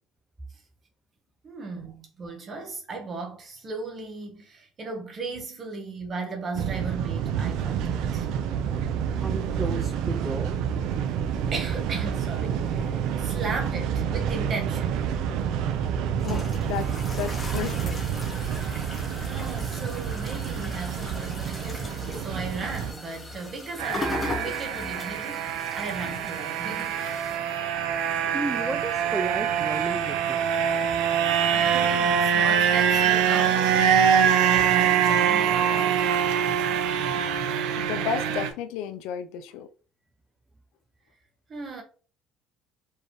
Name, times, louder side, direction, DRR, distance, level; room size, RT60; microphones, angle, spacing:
voice 1, 1.4-8.3 11.5-15.0 18.6-19.0 19.2-27.0 31.5-36.1 41.5-41.8, right 3 dB, 25° right, 1.2 m, -36 dB
sound 1, 6.5-22.9, right 8 dB, 60° right, 0.5 m, -29 dB
voice 2, 9.2-10.6 28.3-30.5, right 2 dB, 10° right, 0.3 m, -33 dB
sound 2, 15.7-27.4, left 2 dB, 15° left, 0.9 m, -38 dB
voice 3, 16.2-18.1 37.8-39.7, left 9 dB, 75° left, 0.4 m, -33 dB
sound 3, 23.8-38.5, right 8 dB, 90° right, 0.7 m, -24 dB
4.6 x 3.3 x 3.1 m
cardioid pair, 180°, 0 cm